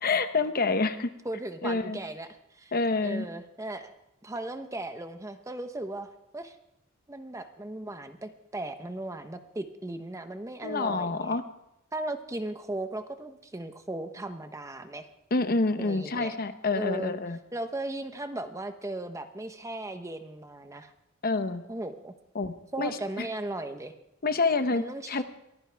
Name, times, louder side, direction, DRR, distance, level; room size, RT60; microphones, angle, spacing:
voice 1, 0.0-1.1 1.6-2.0 2.7-3.3 10.6-11.4 15.3-17.4 21.2-21.6 22.3-22.9 23.2-23.3 24.2-25.2, left 3 dB, 45° left, 10 dB, 0.9 m, -27 dB
voice 2, 1.2-2.3 2.5-2.7 3.0-3.9 4.2-6.6 7.1-11.4 11.9-15.1 15.8-16.3 16.7-17.1 17.5-20.9 21.7-22.1 22.7-23.9 24.7-25.2, right 2 dB, 15° right, 8 dB, 1.0 m, -37 dB
23.0 x 15.0 x 3.5 m, 0.86 s
head